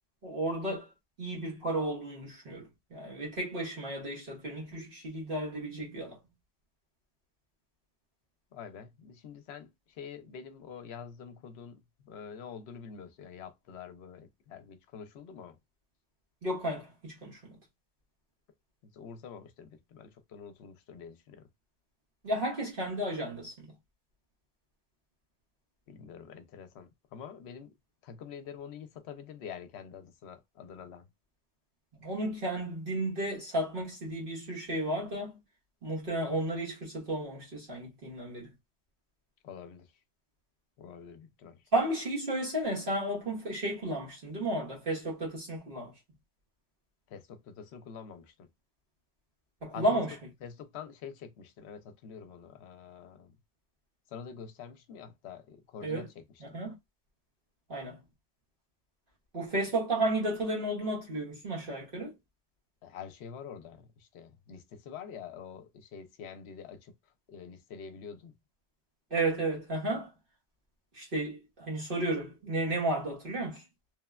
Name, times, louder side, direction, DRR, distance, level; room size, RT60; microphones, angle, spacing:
voice 1, 0.2-0.9 1.2-6.2 16.4-17.6 22.2-23.7 32.0-35.4 35.8-38.5 41.7-46.0 49.6-50.1 55.8-56.1 56.4-56.7 57.7-58.0 59.3-62.2 69.1-70.1 70.9-73.7, right 1 dB, 55° right, 1.0 m, -33 dB
voice 2, 8.5-15.6 18.8-21.5 25.9-27.7 28.0-31.1 39.4-39.9 40.8-41.6 47.1-48.5 49.7-50.0 50.4-53.3 54.1-56.2 56.5-56.6 62.8-66.9 67.3-68.4, left 7 dB, 75° left, 0.8 m, -46 dB
3.1 x 2.1 x 2.3 m
omnidirectional pair, 1.1 m